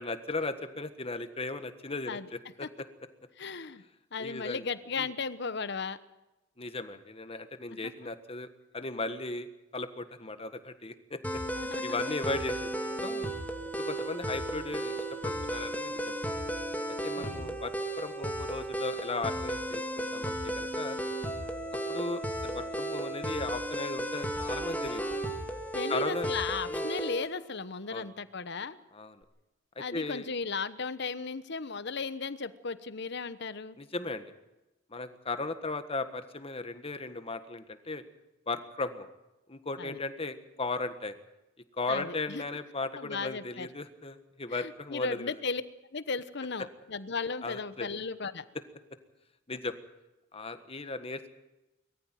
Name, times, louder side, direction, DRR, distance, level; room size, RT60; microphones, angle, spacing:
voice 1, 0.0-2.9 4.2-4.7 5.0-5.1 6.6-8.5 8.7-11.4 11.8-12.7 13.0-13.3 13.8-16.3 17.0-21.0 21.7-25.0 25.9-26.3 26.7-26.9 27.9-28.1 28.9-29.2 29.7-30.3 33.8-34.3 34.9-38.0 38.5-39.1 39.5-41.1 41.7-45.4 46.6-46.7 47.4-47.9 49.5-49.7 50.3-51.3, left 3 dB, 30° left, 10 dB, 1.5 m, -37 dB
voice 2, 3.4-3.8 4.1-6.0 7.7-7.9 11.6-11.8 17.2-17.5 25.7-28.8 29.8-33.8 39.8-40.0 41.9-42.4 43.0-43.7 44.5-45.6 45.9-48.4, left 4 dB, 60° left, 14 dB, 1.1 m, -36 dB
sound 1, 11.2-27.3, right 1 dB, 10° left, 2.2 m, -34 dB
22.0 x 14.5 x 9.2 m, 0.98 s
head